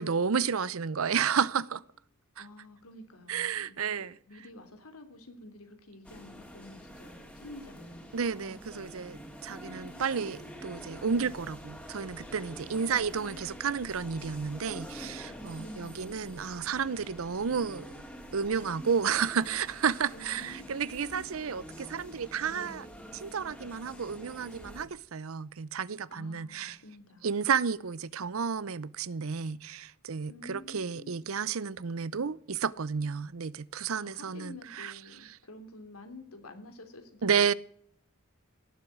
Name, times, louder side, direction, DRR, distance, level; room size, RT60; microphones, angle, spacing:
voice 1, 0.0-1.8 2.4-2.5 3.3-4.1 8.1-17.9 18.3-22.9 23.1-26.8 27.2-34.9 35.3-35.4 37.2-37.5, right 6 dB, 70° right, 0.6 m, -31 dB
voice 2, 2.4-8.2 12.7-13.6 15.6-16.1 20.1-21.3 26.1-27.4 30.3-31.2 33.9-37.6, left 1 dB, 85° left, 3.0 m, -49 dB
sound 1, 6.0-24.8, equal, 5° left, 2.7 m, -46 dB
18.0 x 8.0 x 8.6 m
head